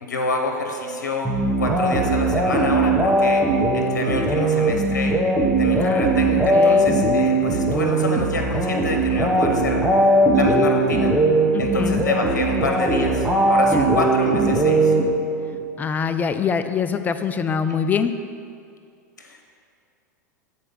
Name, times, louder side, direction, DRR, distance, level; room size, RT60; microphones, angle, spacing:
voice 1, 0.0-1.3 1.6-3.4 3.7-5.2 5.6-9.8 10.3-11.1 11.6-14.9 19.2-19.5, left 3 dB, 75° left, 2 dB, 0.9 m, -27 dB
sound 1, 1.2-15.6, right 2 dB, 10° right, 0.9 m, -19 dB
voice 2, 5.8-7.0 11.5-12.0 13.7-13.9 15.8-18.1, left 6 dB, 20° left, 10 dB, 0.4 m, -25 dB
8.3 x 4.3 x 5.3 m, 2.4 s
hypercardioid pair, 95°, 10 cm